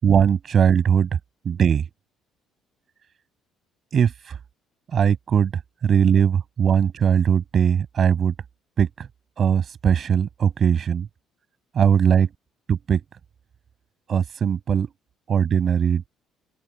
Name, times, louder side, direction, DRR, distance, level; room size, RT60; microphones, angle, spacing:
voice 1, 0.0-1.1 1.4-1.8 3.9-4.4 4.9-5.5 5.8-8.3 8.8-9.1 9.4-11.1 11.7-12.3 12.7-13.0 14.1-14.9 15.3-16.1, right 7 dB, 35° right, 7.8 m, -20 dB
open air
cardioid pair, 175°, 0 cm